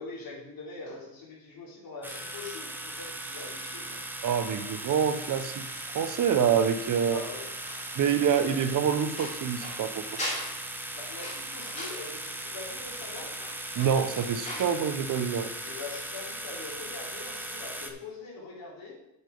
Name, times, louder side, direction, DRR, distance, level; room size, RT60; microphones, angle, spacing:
voice 1, 0.0-4.0 7.1-7.5 10.9-13.3 15.6-18.9, left 3 dB, 65° left, -4 dB, 3.4 m, -43 dB
sound 1, 2.0-17.9, right 1 dB, 5° right, 0.7 m, -38 dB
voice 2, 4.2-5.6 5.9-7.2 7.9-10.0 13.8-15.5, right 8 dB, 55° right, 10 dB, 0.8 m, -26 dB
sound 2, 7.6-14.8 15.1-15.2, left 1 dB, 20° left, 3.2 m, -41 dB
8.0 x 5.8 x 5.3 m, 0.91 s
cardioid pair, 165°, 37 cm